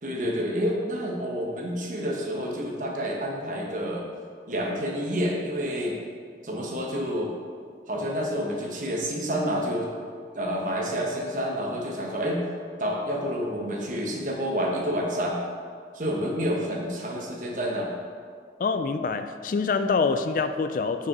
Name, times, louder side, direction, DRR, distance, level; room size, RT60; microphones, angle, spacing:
voice 1, 0.0-4.1 4.5-6.0 6.4-7.3 7.9-9.9 10.3-12.4 12.8-15.4 15.9-17.9, equal, 45° right, -1 dB, 1.1 m, -29 dB
voice 2, 18.6-21.1, left 4 dB, 50° left, 9 dB, 0.3 m, -25 dB
5.9 x 4.8 x 6.0 m, 2.1 s
head